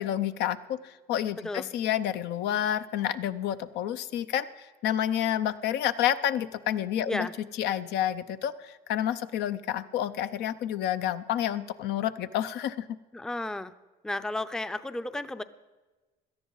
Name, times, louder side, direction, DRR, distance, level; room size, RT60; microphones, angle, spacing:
voice 1, 0.0-7.3 7.6-12.9, left 11 dB, 80° left, 12 dB, 0.6 m, -29 dB
voice 2, 1.4-1.7 7.1-7.3 13.1-13.7 14.0-15.4, left 2 dB, 5° left, 12 dB, 0.5 m, -33 dB
17.5 x 12.5 x 3.9 m, 1.2 s
cardioid pair, 110°, 17 cm